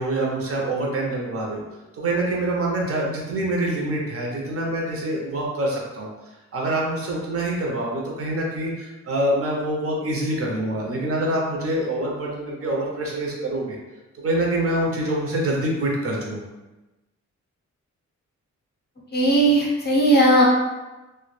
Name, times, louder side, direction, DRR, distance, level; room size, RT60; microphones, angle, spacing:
voice 1, 0.0-1.6 1.9-6.1 6.5-13.8 14.2-16.4, right 1 dB, 50° right, -2 dB, 0.5 m, -25 dB
voice 2, 19.1-20.4, right 1 dB, 35° left, -3 dB, 0.6 m, -17 dB
2.1 x 2.0 x 3.0 m, 1.1 s
wide cardioid pair, 160°, 29 cm